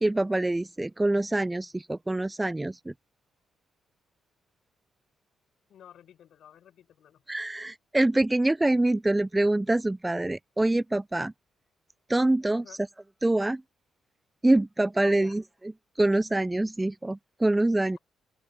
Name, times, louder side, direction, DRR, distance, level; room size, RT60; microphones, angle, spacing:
voice 1, 0.0-2.9 7.3-11.3 12.1-12.6 13.2-13.6 14.4-15.4 16.0-18.0, right 2 dB, 15° right, 0.4 m, -25 dB
voice 2, 5.7-7.2 12.5-12.8 15.0-15.4, left 10 dB, 65° left, 5.2 m, -51 dB
open air
hypercardioid pair, 45°, 0 cm